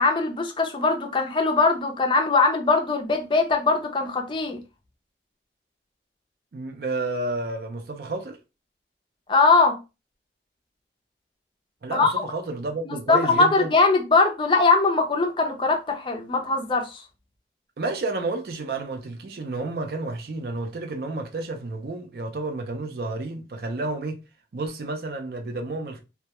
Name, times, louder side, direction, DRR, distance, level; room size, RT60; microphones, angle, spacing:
voice 1, 0.0-4.6 9.3-9.8 11.9-12.3 12.9-17.0, left 3 dB, 30° left, 0.4 m, -21 dB
voice 2, 6.5-8.4 11.8-13.7 17.8-24.2 24.5-26.0, right 2 dB, 55° right, 0.4 m, -31 dB
2.2 x 2.1 x 2.8 m
head